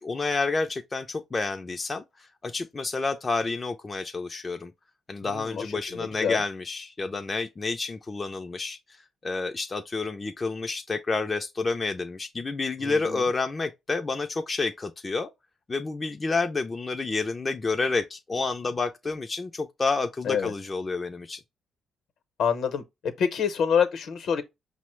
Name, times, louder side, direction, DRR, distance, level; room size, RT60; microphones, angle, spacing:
voice 1, 0.0-4.7 5.1-15.3 15.7-21.4, left 3 dB, 25° left, 0.4 m, -29 dB
voice 2, 5.2-6.4 12.8-13.3 20.2-20.5 22.4-24.4, left 7 dB, 70° left, 0.8 m, -27 dB
5.3 x 2.0 x 3.0 m
cardioid pair, 90°, 0 cm